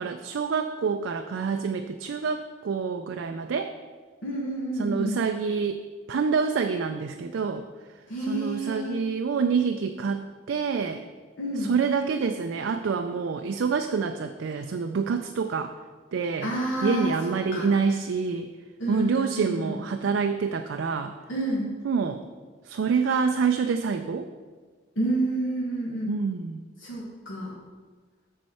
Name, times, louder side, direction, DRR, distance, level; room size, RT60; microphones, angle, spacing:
voice 1, 0.0-3.7 4.8-5.8 6.1-7.7 8.3-11.0 11.6-15.7 16.1-16.5 16.8-18.5 18.9-21.1 21.8-22.2 22.7-24.3 26.1-26.6, right 5 dB, 75° right, 7 dB, 0.4 m, -27 dB
voice 2, 4.2-5.2 8.1-9.0 11.4-11.7 16.4-17.1 17.5-17.7 18.8-19.7 21.3-21.7 25.0-26.1 26.8-27.5, right 1 dB, 80° left, -5 dB, 1.5 m, -29 dB
7.7 x 6.5 x 4.2 m, 1.5 s
head